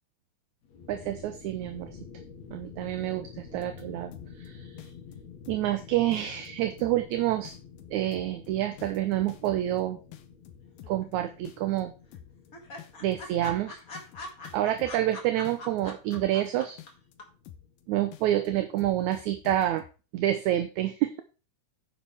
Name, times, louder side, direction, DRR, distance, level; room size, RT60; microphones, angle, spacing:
sound 1, 0.6-19.4, left 6 dB, 60° left, 2.9 m, -50 dB
voice 1, 0.9-2.0 2.5-4.1 4.4-4.8 5.5-7.5 7.9-10.0 10.9-11.9 13.0-13.8 14.5-16.8 17.9-19.8 20.1-21.2, right 13 dB, 75° right, 9 dB, 2.0 m, -28 dB
sound 2, 3.5-4.5 4.8-5.8 6.1-6.5 6.8-7.1 7.5-9.8 10.1-11.1 11.5-11.8 12.1-12.5 12.8-15.1 15.5-16.5 16.8-17.1 17.5-17.8 18.1-19.9, left 11 dB, 85° left, 2.7 m, -48 dB
sound 3, 10.8-11.5 11.8-11.9 12.1-12.2 12.5-16.9 17.2-17.3, left 2 dB, 30° left, 2.1 m, -42 dB
9.9 x 9.0 x 3.5 m, 0.33 s
omnidirectional pair, 3.8 m